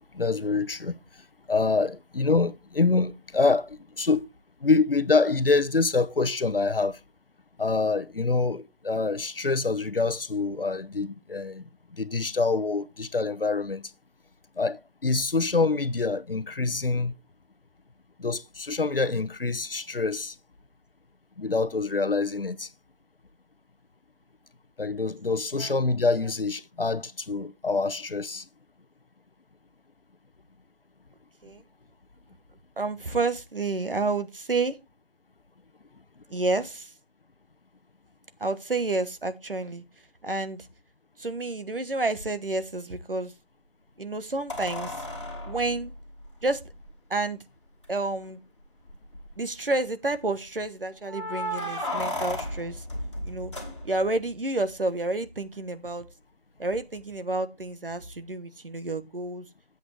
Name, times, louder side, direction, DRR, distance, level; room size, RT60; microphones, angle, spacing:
voice 1, 0.1-0.9 1.5-4.3 4.6-7.0 7.6-11.6 12.0-13.8 14.6-17.1 18.2-20.3 21.4-22.7 24.8-28.4, left 3 dB, 65° left, 0.8 m, -26 dB
voice 2, 32.8-34.8 36.3-36.9 38.4-39.8 40.2-40.7 41.2-43.3 44.0-45.0 45.5-45.9 46.4-46.6 47.1-47.4 47.9-48.4 49.4-52.8 53.2-53.5 53.8-56.1 56.6-59.5, right 2 dB, 60° right, 1.2 m, -30 dB
sound 1, 42.2-42.3 44.5-46.9 47.8-47.9 48.2-48.3 48.9-49.4 51.1-54.2 56.7-56.8, left 1 dB, 30° left, 2.3 m, -34 dB
11.0 x 8.0 x 3.3 m
figure-of-eight pair, 175°, 31 cm